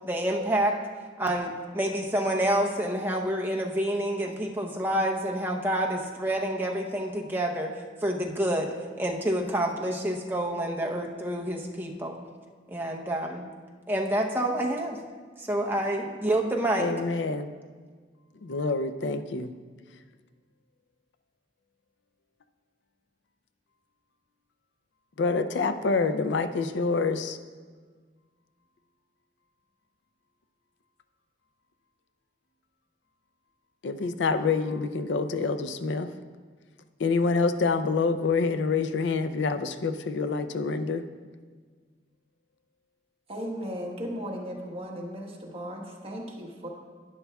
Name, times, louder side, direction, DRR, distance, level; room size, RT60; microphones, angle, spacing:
voice 1, 0.0-0.8 1.2-7.7 8.0-12.2 12.7-13.4 13.9-15.0 15.4-16.9, right 1 dB, 10° right, 1 dB, 0.8 m, -28 dB
voice 2, 16.8-17.5 18.4-19.5 25.2-27.4 33.8-36.1 37.0-41.1, left 4 dB, 85° left, 10 dB, 0.5 m, -27 dB
voice 3, 43.3-46.7, equal, 35° right, -1 dB, 1.2 m, -36 dB
11.0 x 10.0 x 2.3 m, 1.5 s
head